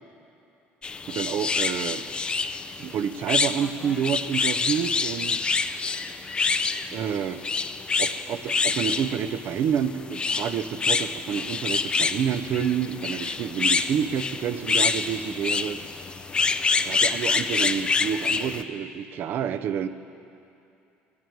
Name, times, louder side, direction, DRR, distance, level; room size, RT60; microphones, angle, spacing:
sound 1, 0.8-18.6, left 4 dB, 25° left, 0.5 m, -27 dB
voice 1, 1.1-2.0 2.8-5.7 6.9-7.4 8.0-15.8 16.8-19.9, right 8 dB, 55° right, 12 dB, 0.7 m, -28 dB
17.0 x 15.5 x 4.7 m, 2.7 s
cardioid pair, 125°, 4 cm